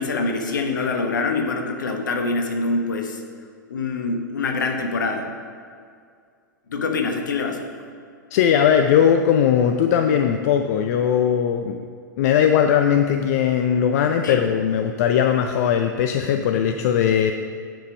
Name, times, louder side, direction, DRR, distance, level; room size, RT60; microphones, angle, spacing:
voice 1, 0.0-3.2 3.7-5.2 6.7-7.6 14.2-14.5, left 3 dB, 70° left, 4 dB, 1.2 m, -25 dB
voice 2, 8.3-11.9 12.2-17.3, left 8 dB, 50° left, 6 dB, 0.5 m, -19 dB
9.1 x 5.2 x 5.3 m, 2.2 s
figure-of-eight pair, 100°, 11 cm